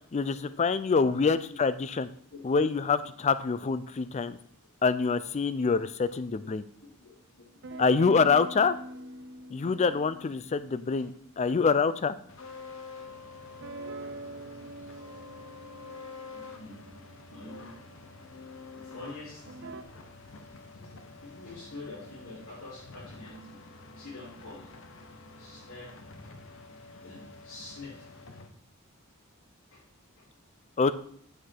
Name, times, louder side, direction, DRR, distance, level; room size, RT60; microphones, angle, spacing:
voice 1, 0.1-2.1 2.4-4.4 4.8-6.6 7.8-8.8 9.5-11.1 11.4-12.2 30.8-30.9, left 5 dB, 30° left, 14 dB, 0.4 m, -25 dB
voice 2, 2.3-2.7 3.0-3.1 6.4-6.5 7.0-7.1 14.6-15.1 16.3-16.9 17.3-17.7 18.7-19.4 20.3-23.6 23.9-24.7 25.4-26.4 27.0-28.2 29.7-29.8 30.2-30.3, left 2 dB, 90° left, -8 dB, 2.8 m, -46 dB
sound 1, 7.6-12.0 13.6-18.1 19.4-19.8, right 1 dB, 55° right, 0.6 m, -45 dB
sound 2, 12.3-28.5, left 3 dB, 65° left, 0.9 m, -48 dB
7.3 x 6.6 x 4.5 m, 0.62 s
head